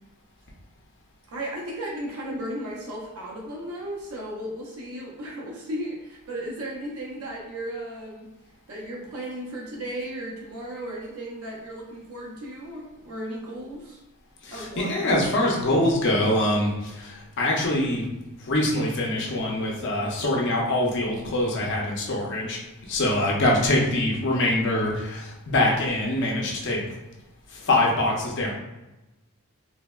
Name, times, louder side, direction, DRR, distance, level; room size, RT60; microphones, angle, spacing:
voice 1, 1.3-8.3 8.7-14.0 14.5-15.3 15.8-15.9, right 1 dB, 70° right, -3 dB, 0.5 m, -35 dB
voice 2, 14.4-18.1 18.4-26.8 27.5-28.5, left 1 dB, 55° left, -2 dB, 0.5 m, -24 dB
3.2 x 2.1 x 2.2 m, 1.0 s
head